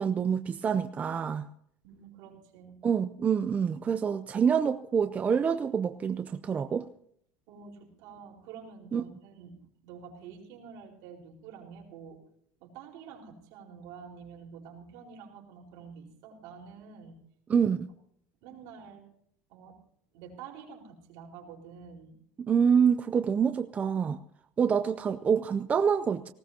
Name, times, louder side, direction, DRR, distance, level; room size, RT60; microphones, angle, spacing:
voice 1, 0.0-1.5 2.8-6.9 8.9-9.0 17.5-17.9 22.5-24.2 24.6-26.3, right 7 dB, 20° right, 10 dB, 0.5 m, -26 dB
voice 2, 1.8-2.8 7.5-12.2 12.6-17.2 18.4-19.0 19.5-19.8 20.1-22.1, right 6 dB, 70° right, 0 dB, 4.6 m, -48 dB
19.0 x 18.0 x 2.9 m, 0.68 s
cardioid pair, 150°, 7 cm